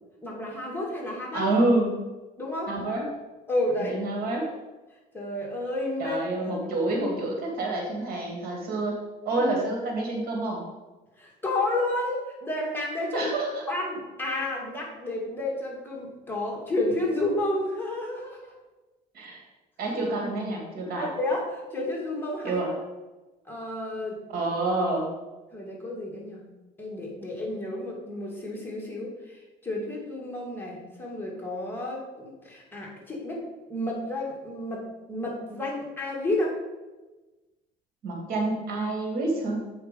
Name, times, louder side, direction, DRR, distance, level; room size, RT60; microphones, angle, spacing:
voice 1, 0.2-1.5 2.4-2.7 3.5-4.0 5.1-6.6 9.3-9.4 11.2-13.3 13.7-18.5 21.0-22.6 23.5-24.2 25.5-26.5 26.8-33.4 33.7-36.6, left 1 dB, 10° left, -3 dB, 2.5 m, -31 dB
voice 2, 1.3-2.0 2.7-3.1 3.9-4.5 6.0-9.0 9.3-10.6 13.1-13.6 19.1-19.4 19.8-21.1 22.4-22.7 24.3-25.1 38.0-39.7, right 2 dB, 60° right, 0 dB, 2.4 m, -27 dB
7.6 x 5.6 x 5.4 m, 1.2 s
cardioid pair, 110°, 17 cm